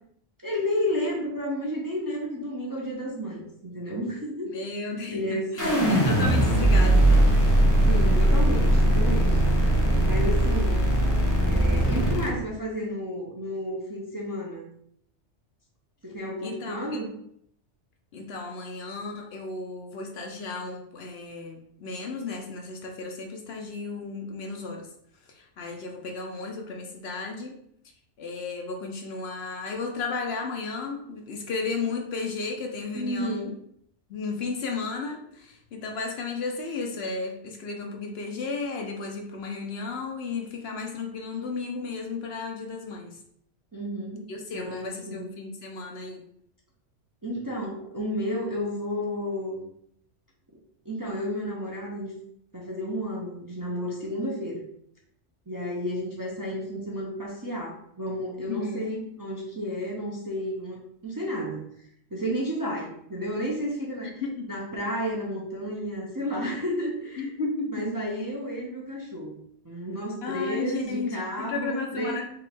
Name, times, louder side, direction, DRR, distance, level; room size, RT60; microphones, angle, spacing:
voice 1, 0.4-4.5 5.1-5.9 7.8-9.4 10.0-10.9 11.4-14.7 16.0-17.1 32.9-33.5 43.7-44.2 44.5-45.3 47.2-49.6 50.8-52.1 52.5-54.6 55.5-61.6 62.1-64.2 64.5-67.3 67.7-72.2, equal, 20° right, -4 dB, 0.6 m, -32 dB
voice 2, 4.5-5.2 5.5-7.5 16.4-17.0 18.1-24.9 25.3-27.6 28.2-33.5 34.1-43.2 44.3-46.2 58.5-58.9 64.0-64.5 67.2-67.9 70.2-72.2, left 4 dB, 65° left, 2 dB, 0.8 m, -34 dB
sound 1, 5.6-12.3, right 1 dB, 15° left, 0.8 m, -20 dB
4.6 x 2.4 x 3.4 m, 0.70 s
omnidirectional pair, 1.2 m